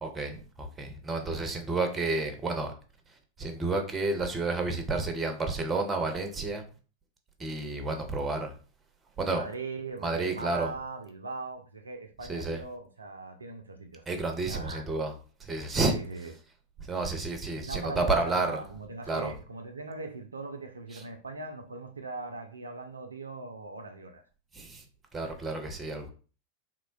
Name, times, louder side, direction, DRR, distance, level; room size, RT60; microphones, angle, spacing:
voice 1, 0.0-2.7 3.4-6.6 7.4-8.5 9.2-9.4 10.0-10.7 12.3-12.6 14.1-15.1 15.4-16.0 16.8-18.6 19.1-19.3 20.9-21.0 24.5-24.8 25.1-26.1, right 3 dB, 15° right, 0.5 m, -30 dB
voice 2, 9.3-14.0 14.4-14.8 15.9-16.3 17.6-24.2, right 3 dB, 75° right, 0.3 m, -40 dB
3.0 x 2.1 x 2.4 m
figure-of-eight pair, 90°, 0 cm